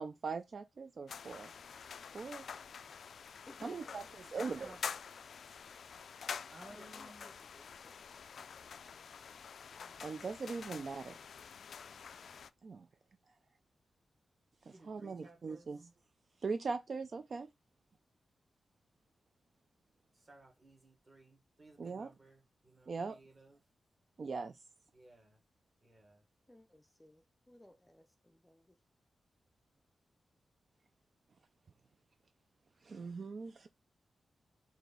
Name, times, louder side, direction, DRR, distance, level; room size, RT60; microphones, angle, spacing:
voice 1, 0.0-1.5 2.1-2.4 3.6-4.8 10.0-11.2 12.6-12.9 14.7-15.9 16.4-17.5 21.8-22.1 22.9-23.2 24.2-24.5 32.8-33.7, right 4 dB, 45° right, 0.3 m, -40 dB
sound 1, 1.1-12.5, left 6 dB, 65° left, 0.3 m, -47 dB
voice 2, 3.5-3.9 6.7-8.0 26.5-28.8, left 1 dB, 10° left, 0.5 m, -59 dB
voice 3, 4.3-4.8 6.5-7.3 9.7-10.5 14.6-15.7 20.1-23.6 24.9-25.4 25.8-26.2, right 2 dB, 25° right, 1.5 m, -58 dB
4.8 x 2.6 x 3.9 m
wide cardioid pair, 140°, 0 cm